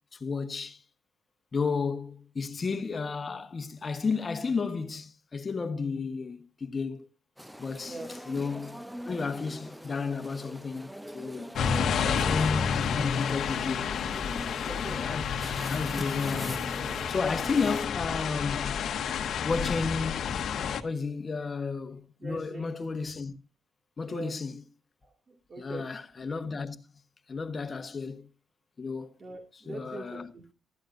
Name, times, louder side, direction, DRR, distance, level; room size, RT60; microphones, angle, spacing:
voice 1, 0.1-0.8 1.5-7.1 7.6-11.6 12.0-13.9 14.6-15.3 15.7-16.6 17.1-18.8 19.4-20.3 20.8-23.3 24.0-24.6 25.6-26.8 27.3-28.3 28.8-29.2 29.7-30.3, left 4 dB, 35° left, 1.2 m, -33 dB
sound 1, 7.4-17.9, equal, 5° right, 0.6 m, -43 dB
sound 2, 11.5-20.8, left 7 dB, 65° left, 1.1 m, -30 dB
voice 2, 11.6-11.9 14.4-15.1 22.2-22.7 24.1-24.3 25.0-25.9 29.2-30.4, right 2 dB, 35° right, 2.2 m, -42 dB
15.0 x 13.0 x 2.6 m
cardioid pair, 90°, 0 cm